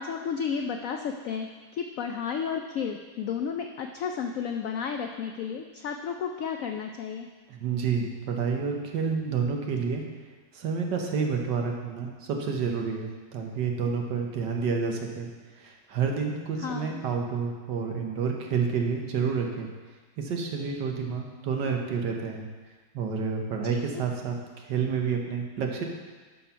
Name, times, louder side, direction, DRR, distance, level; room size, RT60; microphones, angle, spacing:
voice 1, 0.0-7.3 16.6-17.0 23.7-24.0, left 6 dB, 85° left, 5 dB, 0.7 m, -32 dB
voice 2, 7.5-10.0 10.5-15.3 15.6-19.7 20.2-22.5 22.9-24.3 24.7-25.8, right 5 dB, 70° right, 2 dB, 1.7 m, -29 dB
11.5 x 4.4 x 5.7 m, 1.4 s
omnidirectional pair, 2.0 m